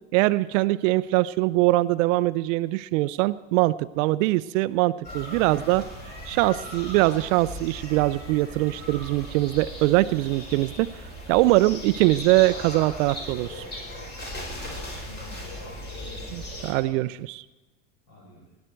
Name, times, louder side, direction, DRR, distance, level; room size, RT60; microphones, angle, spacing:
voice 1, 0.1-5.8 6.3-10.9 11.3-13.6 16.3-17.4, right 19 dB, 75° right, 14 dB, 0.5 m, -22 dB
sound 1, 5.0-16.7, equal, 25° left, 5.4 m, -38 dB
voice 2, 5.2-5.8 14.5-17.0 18.1-18.5, left 1 dB, 40° left, -5 dB, 5.3 m, -48 dB
17.5 x 11.0 x 4.5 m, 1.1 s
supercardioid pair, 105°, 38 cm